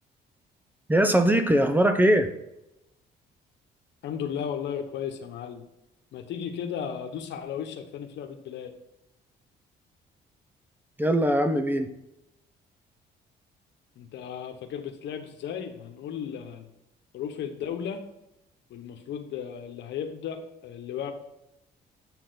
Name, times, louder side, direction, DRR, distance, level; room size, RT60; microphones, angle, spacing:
voice 1, 0.9-2.3 11.0-11.9, right 1 dB, 10° right, 8 dB, 0.7 m, -21 dB
voice 2, 4.0-5.6 6.1-8.7 14.0-16.7 17.1-18.0 18.7-20.4 20.6-21.1, left 8 dB, 75° left, 6 dB, 1.2 m, -35 dB
8.7 x 4.6 x 4.0 m, 0.86 s
cardioid pair, 95°, 18 cm